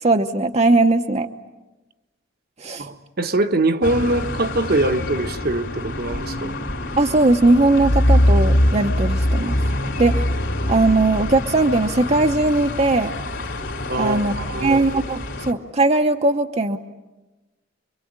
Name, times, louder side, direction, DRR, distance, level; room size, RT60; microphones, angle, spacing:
voice 1, 0.0-1.3 2.6-2.9 7.0-9.6 10.0-10.2 10.7-13.1 14.0-14.3 14.6-16.8, right 2 dB, 35° right, 5 dB, 0.9 m, -19 dB
voice 2, 2.8-6.6 13.9-14.8, right 2 dB, 50° right, 7 dB, 1.3 m, -23 dB
sound 1, 3.8-15.5, left 1 dB, 65° left, 3.1 m, -23 dB
27.0 x 24.0 x 8.8 m, 1.1 s
head